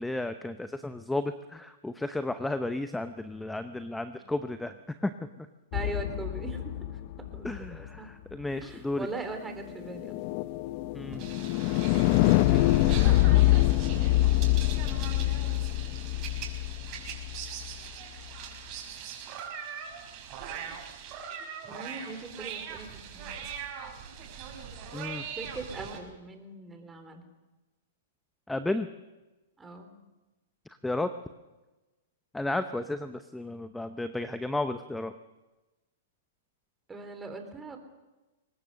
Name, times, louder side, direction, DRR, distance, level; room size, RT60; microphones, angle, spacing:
voice 1, 0.0-4.7 5.0-5.5 7.4-9.1 10.9-11.2 24.9-25.2 28.5-28.9 30.8-31.1 32.3-35.1, left 2 dB, 5° left, 10 dB, 0.8 m, -33 dB
sound 1, 5.7-7.9 9.7-17.8, left 16 dB, 45° left, 0.6 m, -25 dB
voice 2, 5.7-7.0 7.3-8.1 8.6-10.2 11.7-11.8 12.4-13.8 21.6-23.3 25.4-27.3 29.6-29.9 36.9-37.8, right 3 dB, 10° right, 6 dB, 3.6 m, -41 dB
sound 2, 11.1-26.0, right 7 dB, 40° right, 5.8 m, -41 dB
23.5 x 19.5 x 6.5 m, 1.1 s
hypercardioid pair, 125°, 0 cm